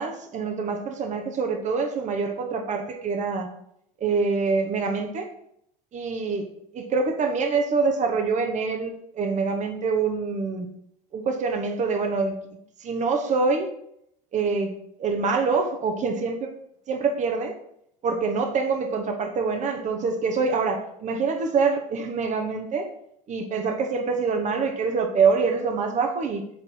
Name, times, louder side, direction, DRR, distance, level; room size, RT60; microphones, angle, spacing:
voice 1, 0.0-3.5 4.0-5.3 5.9-6.5 6.7-10.7 11.1-12.4 12.8-13.7 14.3-14.7 15.0-16.5 16.9-17.5 18.0-22.9 23.3-26.4, right 4 dB, 40° right, 5 dB, 1.1 m, -25 dB
7.7 x 4.1 x 4.6 m, 0.74 s
supercardioid pair, 90°, 18 cm